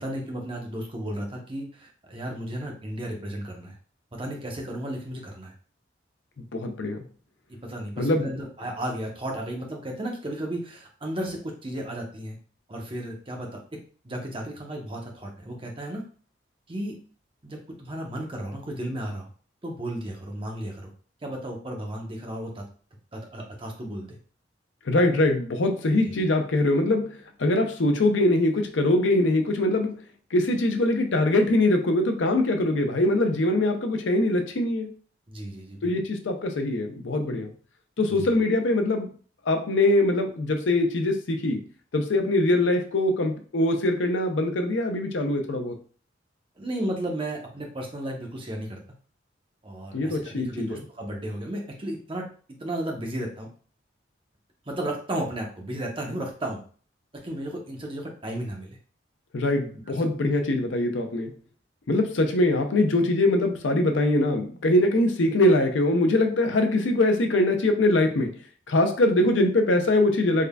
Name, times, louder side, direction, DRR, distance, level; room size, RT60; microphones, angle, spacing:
voice 1, 0.0-3.7 4.1-5.5 7.6-12.4 12.7-13.6 14.0-16.0 16.7-16.9 17.4-19.3 19.6-20.9 21.2-22.6 23.1-24.2 26.0-26.2 35.3-35.9 38.1-38.3 46.6-48.8 49.6-52.2 52.6-53.5 54.7-56.6 57.2-58.8 59.9-60.0, right 1 dB, 30° right, 1 dB, 0.8 m, -34 dB
voice 2, 6.5-7.0 8.0-8.3 24.9-27.1 27.4-29.9 30.3-34.9 35.8-37.5 38.0-39.1 39.5-41.6 41.9-45.7 49.9-50.8 59.3-61.3 61.9-68.3 68.7-70.4, left 1 dB, 90° left, 5 dB, 0.6 m, -23 dB
3.7 x 3.4 x 2.2 m, 0.42 s
head